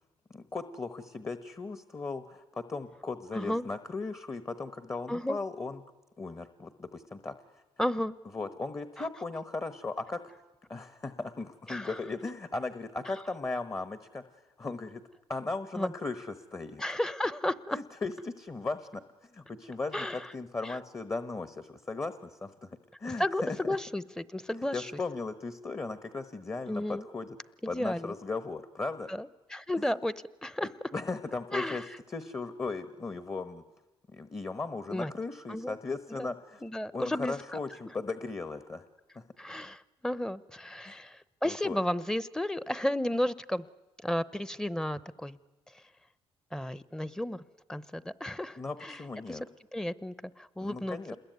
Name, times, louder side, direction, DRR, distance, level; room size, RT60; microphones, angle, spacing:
voice 1, 0.3-5.8 6.2-7.6 8.3-10.2 10.7-15.0 15.3-16.8 17.7-23.8 24.7-29.1 29.8-29.9 30.9-33.6 34.1-36.6 36.9-38.9 39.1-39.2 40.8-41.0 41.4-41.8 48.6-49.4 50.6-51.2, left 3 dB, 25° left, 11 dB, 1.2 m, -37 dB
voice 2, 3.3-3.6 5.1-5.4 7.8-8.1 11.7-11.9 15.7-15.9 16.8-17.8 19.9-20.2 20.6-20.8 23.0-24.9 26.7-27.0 27.7-28.1 29.1-30.1 30.4-30.7 31.5-31.8 34.9-35.1 35.5-35.8 36.2-36.3 36.6-37.3 39.4-43.7 44.0-45.4 46.5-47.4 47.7-49.0 49.3-49.4 49.7-51.2, left 1 dB, 5° left, 17 dB, 0.8 m, -33 dB
27.5 x 21.0 x 9.4 m, 1.1 s
cardioid pair, 95°, 11 cm